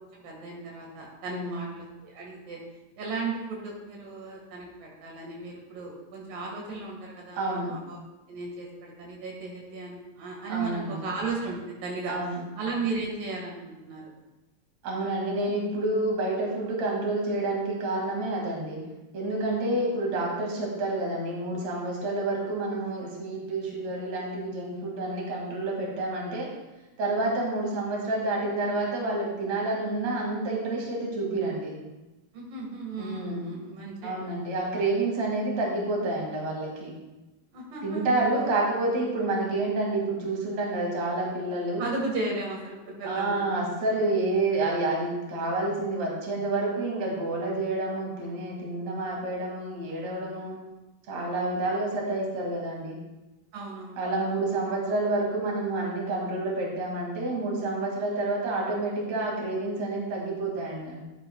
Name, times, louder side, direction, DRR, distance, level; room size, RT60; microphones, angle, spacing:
voice 1, 0.0-2.6 3.0-8.0 8.3-12.1 12.6-14.1 19.5-19.8 32.3-34.5 37.5-38.5 41.8-43.4 53.5-54.6, right 3 dB, 90° right, -2 dB, 3.4 m, -35 dB
voice 2, 1.3-1.6 7.3-7.8 10.5-11.1 12.1-12.4 14.8-18.8 19.1-26.5 27.0-31.7 33.0-33.5 34.0-36.9 37.8-41.9 43.0-50.6 51.1-53.0 54.0-61.0, right 2 dB, 55° right, -2 dB, 3.2 m, -29 dB
12.5 x 9.9 x 2.3 m, 1.0 s
omnidirectional pair, 3.8 m